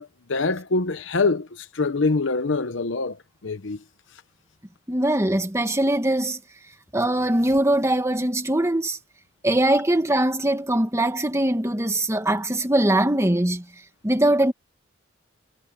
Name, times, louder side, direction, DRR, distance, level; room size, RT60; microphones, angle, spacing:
voice 1, 0.0-3.8, left 3 dB, 70° left, 0.9 m, -25 dB
voice 2, 4.9-6.4 6.9-9.0 9.4-13.6 14.0-14.5, right 1 dB, 15° right, 1.8 m, -21 dB
head